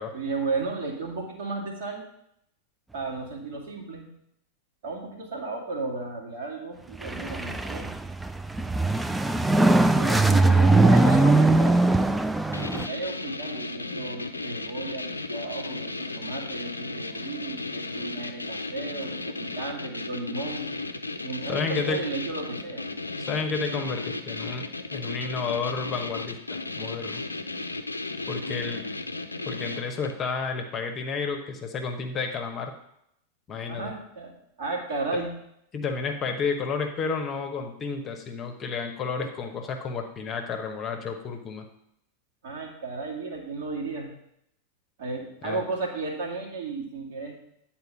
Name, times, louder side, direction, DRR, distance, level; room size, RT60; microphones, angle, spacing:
voice 1, 0.1-2.0 2.9-4.1 4.8-7.9 9.9-11.9 12.7-20.7 21.2-22.9 28.5-28.7 33.7-34.3 34.6-35.3 42.4-44.1 45.0-47.4, right 3 dB, 55° right, -1 dB, 2.2 m, -34 dB
sound 1, 6.9-12.9, right 2 dB, 5° right, 0.4 m, -21 dB
voice 2, 9.5-9.8 10.4-11.4 21.5-22.0 23.3-27.2 28.3-28.8 29.5-32.7 33.5-33.9 35.7-41.6 45.4-45.6, left 5 dB, 25° left, 4 dB, 1.0 m, -31 dB
sound 2, 12.5-30.3, left 2 dB, 80° left, 0.5 m, -35 dB
9.5 x 4.4 x 5.6 m, 0.76 s
figure-of-eight pair, 90°, 0 cm